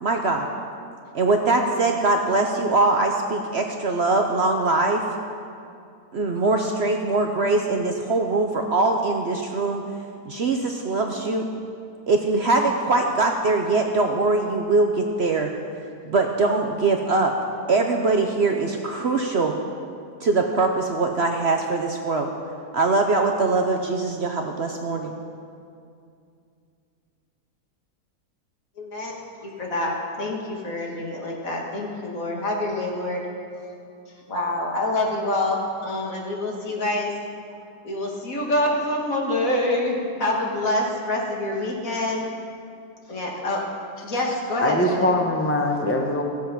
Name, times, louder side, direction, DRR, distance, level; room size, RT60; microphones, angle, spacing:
voice 1, 0.0-0.5 1.1-5.0 6.1-9.8 10.3-11.5 12.1-15.5 16.0-17.3 17.7-19.5 20.2-22.3 22.7-25.2, right 3 dB, 55° right, 3 dB, 0.8 m, -22 dB
voice 2, 28.8-29.1 29.4-33.3 34.3-37.1 37.8-42.2 43.1-43.6 44.0-45.1, left 1 dB, 60° left, -2 dB, 2.2 m, -26 dB
voice 3, 44.6-46.2, left 1 dB, 15° left, 2 dB, 0.6 m, -23 dB
16.0 x 7.6 x 5.7 m, 2.4 s
omnidirectional pair, 1.7 m